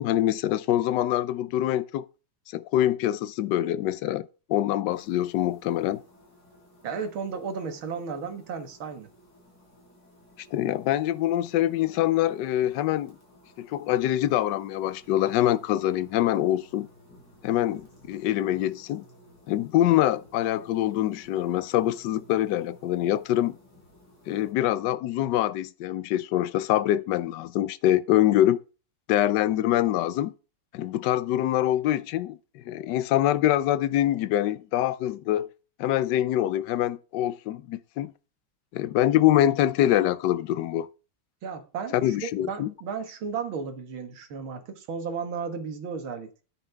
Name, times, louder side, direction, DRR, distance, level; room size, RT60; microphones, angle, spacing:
voice 1, 0.0-2.0 2.5-6.0 10.5-13.2 13.6-16.9 17.4-19.0 19.5-23.6 24.3-28.6 29.1-30.3 30.7-35.5 35.8-38.1 38.7-40.9 41.9-42.7, left 13 dB, 70° left, 1.1 m, -24 dB
sound 1, 4.9-24.5, left 1 dB, 50° left, 4.9 m, -56 dB
voice 2, 6.8-9.1 41.4-46.4, right 6 dB, 75° right, 2.3 m, -34 dB
9.9 x 9.3 x 3.5 m
omnidirectional pair, 2.3 m